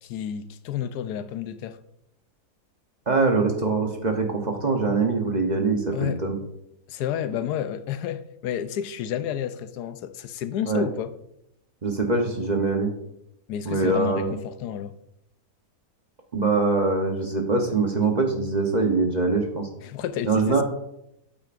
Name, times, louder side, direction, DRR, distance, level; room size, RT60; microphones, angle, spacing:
voice 1, 0.0-1.8 5.9-6.2 6.9-11.1 13.5-15.0 19.8-20.6, left 9 dB, 85° left, 1.2 m, -31 dB
voice 2, 3.1-6.4 10.7-10.9 11.8-12.9 13.6-14.3 16.3-19.7 20.2-20.6, right 3 dB, 35° right, 0.8 m, -23 dB
8.6 x 8.4 x 2.5 m
omnidirectional pair, 1.7 m